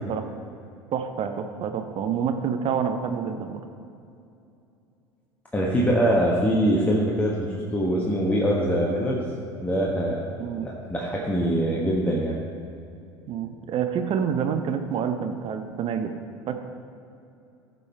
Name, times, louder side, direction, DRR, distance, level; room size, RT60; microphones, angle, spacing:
voice 1, 0.9-3.6 10.4-10.7 13.3-16.1 16.5-16.6, right 7 dB, 40° right, 7 dB, 0.7 m, -27 dB
voice 2, 5.5-9.2 9.6-10.2 10.6-12.4, equal, 10° left, -3 dB, 1.3 m, -23 dB
15.0 x 5.5 x 4.4 m, 2.6 s
figure-of-eight pair, 70°, 14 cm